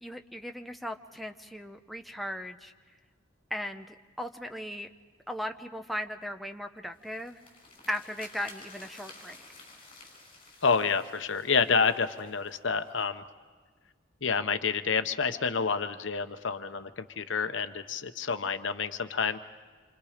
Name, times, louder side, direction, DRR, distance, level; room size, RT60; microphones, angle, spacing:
voice 1, 0.0-2.7 3.5-4.9 5.3-7.4 7.9-9.4, left 1 dB, ahead, 5 dB, 0.8 m, -37 dB
sound 1, 6.9-13.0, left 3 dB, 30° left, 5.9 m, -52 dB
voice 2, 10.6-13.2 14.2-19.4, left 5 dB, 75° left, 9 dB, 0.9 m, -28 dB
27.0 x 26.5 x 5.1 m, 1.4 s
head